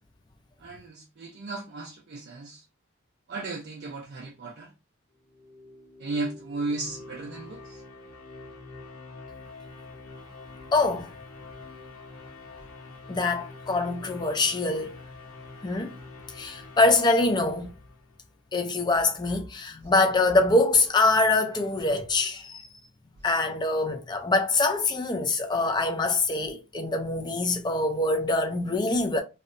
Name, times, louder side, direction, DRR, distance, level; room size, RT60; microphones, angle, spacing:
voice 1, 0.6-2.6 3.3-4.7 6.0-7.8, right 3 dB, 50° right, 0.4 m, -35 dB
sound 1, 5.2-18.3, left 3 dB, 90° left, 0.8 m, -46 dB
voice 2, 10.7-11.1 13.1-15.0 15.6-16.0 16.3-17.7 18.5-22.7 23.2-29.2, left 2 dB, 20° left, 0.4 m, -24 dB
2.7 x 2.1 x 2.5 m
head